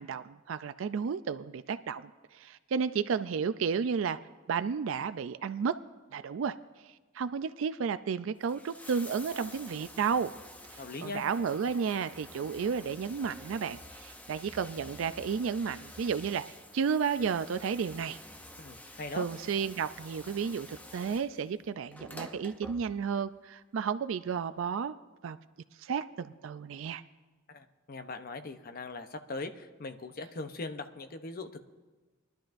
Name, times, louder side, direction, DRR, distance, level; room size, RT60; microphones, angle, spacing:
voice 1, 0.0-4.2 4.5-5.8 6.1-6.5 7.2-10.3 11.0-16.4 16.7-18.2 19.1-25.0 25.2-25.4 25.8-27.0, right 6 dB, 75° right, 12 dB, 0.4 m, -32 dB
Bathtub (filling or washing), 8.3-23.3 24.4-24.5, left 1 dB, 10° left, 0.6 m, -49 dB
voice 2, 10.7-11.2 18.6-19.3 27.5-31.6, left 3 dB, 50° left, 8 dB, 0.8 m, -40 dB
21.5 x 11.5 x 2.6 m, 1.3 s
head